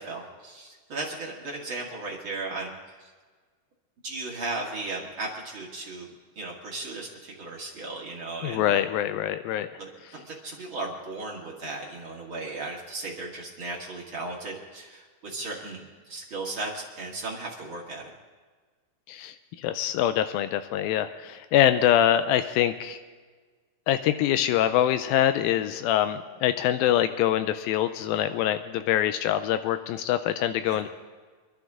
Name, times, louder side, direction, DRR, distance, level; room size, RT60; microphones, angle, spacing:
voice 1, 0.0-2.9 4.0-6.1 6.3-8.8 9.8-18.1 30.6-30.8, right 2 dB, 45° right, -2 dB, 1.8 m, -36 dB
voice 2, 8.4-9.7 19.1-23.0 23.9-30.9, left 11 dB, 90° left, 10 dB, 2.1 m, -24 dB
26.0 x 12.0 x 3.6 m, 1.5 s
omnidirectional pair, 4.7 m